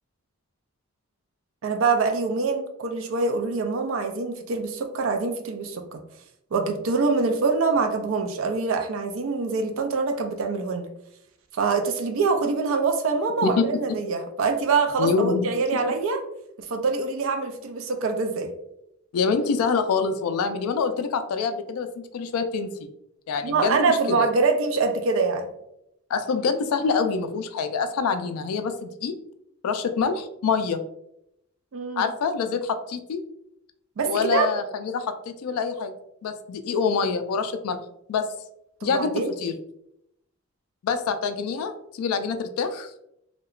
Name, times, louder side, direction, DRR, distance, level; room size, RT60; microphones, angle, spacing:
voice 1, 1.6-6.0 6.5-10.9 11.5-16.2 16.7-18.5 23.4-25.5 31.7-32.1 34.0-34.5 38.8-39.3, right 4 dB, 65° right, 5 dB, 0.4 m, -24 dB
voice 2, 15.0-15.8 19.1-21.9 22.1-22.9 23.3-24.3 26.1-29.1 29.6-30.8 32.0-33.2 34.0-35.9 36.2-37.8 38.1-38.3 38.8-39.5 40.8-43.0, left 5 dB, 80° left, 9 dB, 0.3 m, -26 dB
2.8 x 2.2 x 2.3 m, 0.79 s
head